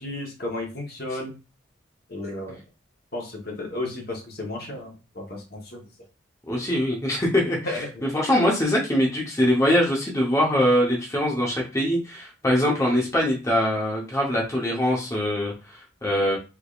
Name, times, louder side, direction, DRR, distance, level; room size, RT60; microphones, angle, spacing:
voice 1, 0.0-1.3 2.1-2.6 3.1-5.8 7.6-7.9, left 2 dB, 50° left, 0 dB, 1.0 m, -33 dB
voice 2, 6.5-7.6 8.1-16.4, equal, 15° left, -3 dB, 0.8 m, -23 dB
3.6 x 3.4 x 2.4 m, 0.30 s
head